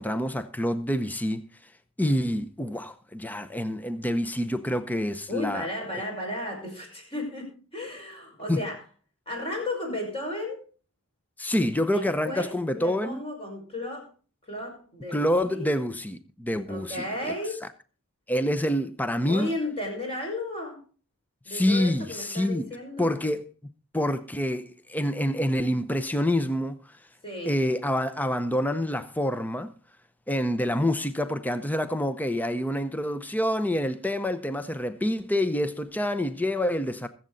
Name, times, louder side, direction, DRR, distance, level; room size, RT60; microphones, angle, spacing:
voice 1, 0.0-1.4 2.0-5.7 8.5-8.6 11.4-13.2 15.1-17.1 18.3-19.5 21.5-22.7 23.0-23.5 23.9-26.7 27.5-29.7 30.3-37.1, left 1 dB, 10° left, 0.7 m, -27 dB
voice 2, 5.3-8.8 9.3-10.6 11.9-14.1 14.5-15.7 16.7-17.6 19.3-20.8 21.4-23.2 27.2-27.5, left 1 dB, 25° left, 5.3 m, -34 dB
22.0 x 7.7 x 4.0 m
head